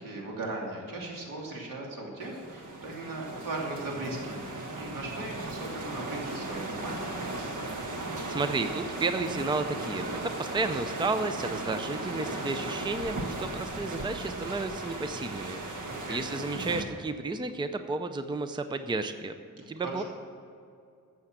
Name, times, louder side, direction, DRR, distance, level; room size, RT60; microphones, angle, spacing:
voice 1, 0.0-7.1 15.8-16.2 19.6-20.0, right 2 dB, 85° right, -2 dB, 3.1 m, -38 dB
sound 1, 2.2-16.8, right 2 dB, 65° right, 1.4 m, -36 dB
voice 2, 8.3-19.3 19.7-20.0, right 3 dB, 15° right, 9 dB, 0.5 m, -32 dB
13.0 x 7.8 x 7.3 m, 2.4 s
wide cardioid pair, 160°, 32 cm